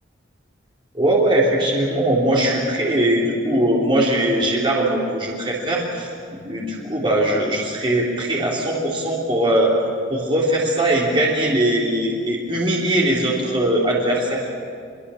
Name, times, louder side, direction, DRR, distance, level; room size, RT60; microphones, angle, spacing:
voice 1, 0.9-9.7 10.1-14.4, right 1 dB, 25° right, -4 dB, 3.6 m, -20 dB
24.0 x 23.5 x 7.2 m, 2.2 s
head